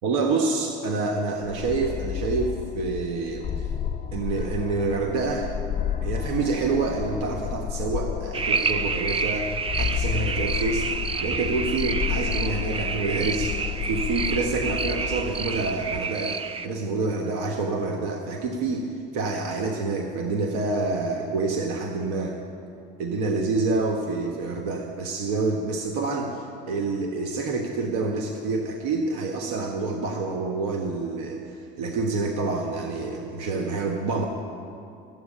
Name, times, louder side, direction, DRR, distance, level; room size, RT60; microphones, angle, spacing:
voice 1, 0.0-3.5 4.1-5.5 6.0-9.5 9.8-10.9 11.2-13.6 13.8-22.4 23.0-31.4 31.8-34.3, right 3 dB, 80° right, 2 dB, 1.4 m, -27 dB
sound 1, 1.4-16.0, left 8 dB, 35° left, 1.2 m, -31 dB
sound 2, 8.3-16.7, right 5 dB, 25° right, 0.7 m, -29 dB
14.0 x 8.2 x 9.9 m, 2.5 s
supercardioid pair, 85°, 21 cm